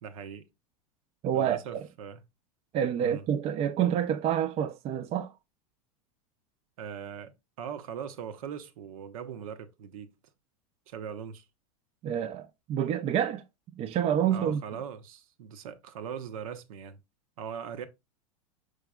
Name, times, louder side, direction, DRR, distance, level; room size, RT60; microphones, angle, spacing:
voice 1, 0.0-0.5 1.3-2.2 3.0-3.2 6.8-7.3 7.6-10.1 10.9-11.4 14.3-17.0 17.4-17.9, right 7 dB, 75° right, 0.7 m, -40 dB
voice 2, 1.2-1.8 2.7-5.3 12.0-13.4 13.8-14.6, right 9 dB, 35° right, 0.4 m, -28 dB
4.9 x 4.5 x 2.2 m
hypercardioid pair, 105°, 18 cm